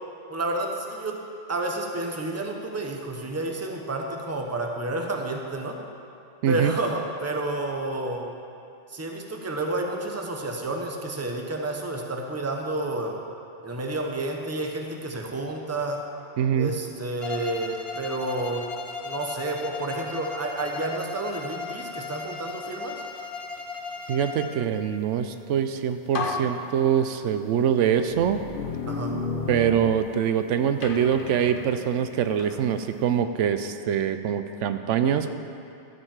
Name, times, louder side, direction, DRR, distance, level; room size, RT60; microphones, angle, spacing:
voice 1, 0.3-1.2 1.5-5.8 6.5-8.3 8.9-13.2 13.6-16.0 16.6-18.6 19.0-23.0 28.9-29.2, right 2 dB, 15° right, 1 dB, 0.8 m, -30 dB
voice 2, 6.4-6.7 16.4-16.7 24.1-28.4 29.5-35.4, right 8 dB, 85° right, 9 dB, 0.9 m, -24 dB
Bowed string instrument, 17.2-24.7, left 4 dB, 35° left, 0.7 m, -36 dB
sound 1, 25.6-25.7 26.1-27.4 28.1-30.4 30.8-32.6, left 4 dB, 50° left, 0.9 m, -33 dB
13.0 x 5.4 x 7.2 m, 2.6 s
omnidirectional pair, 1.2 m